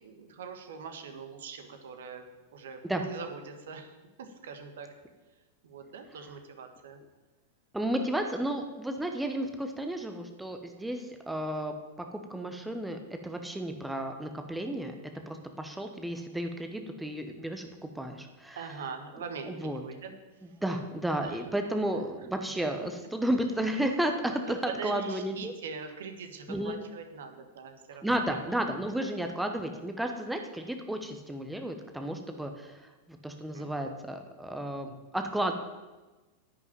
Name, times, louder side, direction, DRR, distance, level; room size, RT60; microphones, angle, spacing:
voice 1, 0.0-2.2 2.5-3.9 4.2-4.9 5.6-7.0 7.9-8.1 18.6-20.1 21.2-21.4 24.6-28.4 33.5-33.7, right 5 dB, 60° right, 6 dB, 1.5 m, -42 dB
voice 2, 7.7-11.7 12.1-14.9 15.3-17.7 17.9-18.6 19.4-19.8 20.6-25.5 26.5-26.8 28.0-32.9 33.2-35.5, right 1 dB, 5° right, 5 dB, 1.0 m, -32 dB
10.5 x 6.1 x 8.9 m, 1.2 s
figure-of-eight pair, 90°, 0 cm